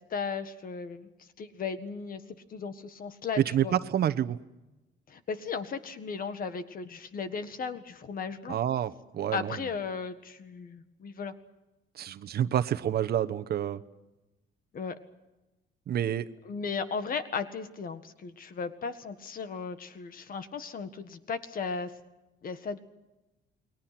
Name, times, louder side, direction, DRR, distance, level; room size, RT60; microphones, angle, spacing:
voice 1, 0.1-1.1 1.4-2.2 2.5-3.7 5.1-8.6 9.3-11.4 14.7-15.0 16.5-21.9 22.4-22.8, left 5 dB, 45° left, 11 dB, 1.7 m, -36 dB
voice 2, 3.4-4.4 8.5-9.6 12.0-13.8 15.9-16.3, right 10 dB, 50° right, 12 dB, 1.1 m, -28 dB
29.5 x 21.5 x 6.0 m, 1.0 s
cardioid pair, 145°, 20 cm